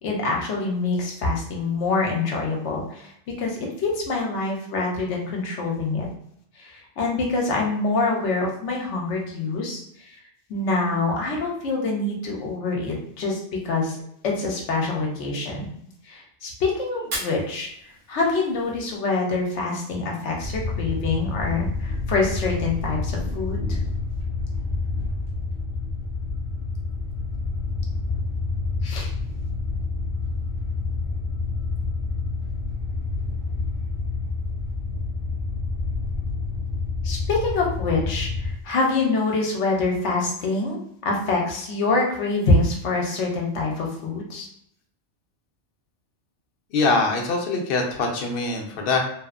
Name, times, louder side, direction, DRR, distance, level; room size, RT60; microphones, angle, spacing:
voice 1, 0.0-3.1 3.4-6.1 6.6-10.2 10.5-14.0 14.2-15.7 16.0-17.7 18.1-23.8 28.8-29.1 37.0-44.5, left 3 dB, 80° left, -1 dB, 0.9 m, -25 dB
Fire, 16.9-19.0, right 1 dB, 60° right, 0.9 m, -37 dB
sound 1, 20.4-38.5, left 3 dB, 35° right, 0.6 m, -28 dB
voice 2, 46.7-49.0, left 3 dB, 60° left, 1 dB, 0.7 m, -23 dB
2.8 x 2.0 x 2.4 m, 0.70 s
omnidirectional pair, 1.2 m